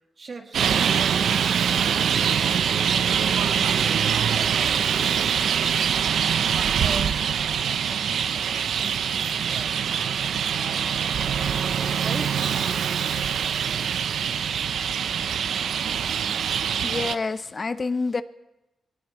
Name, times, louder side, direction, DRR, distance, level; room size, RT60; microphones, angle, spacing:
voice 1, 0.2-4.9 6.7-11.2 12.0-12.3, right 3 dB, 45° right, 1.8 m, -41 dB
Traffic noise roadway noise, 0.5-17.2, right 8 dB, 80° right, 0.5 m, -24 dB
voice 2, 16.8-18.2, left 4 dB, 35° left, 0.5 m, -27 dB
22.0 x 18.0 x 3.0 m
cardioid pair, 95°, 0 cm